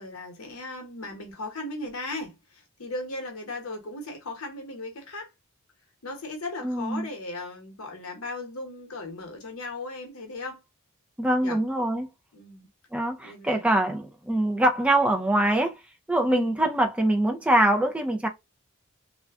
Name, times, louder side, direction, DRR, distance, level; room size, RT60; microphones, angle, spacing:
voice 1, 0.0-5.3 6.0-10.6 11.4-11.6 12.3-12.7 13.2-13.7 16.3-16.5, left 2 dB, 75° left, 0.9 m, -37 dB
voice 2, 6.6-7.1 11.2-12.1 12.9-15.8 16.1-18.3, right 1 dB, 5° right, 0.4 m, -23 dB
2.5 x 2.2 x 3.4 m
head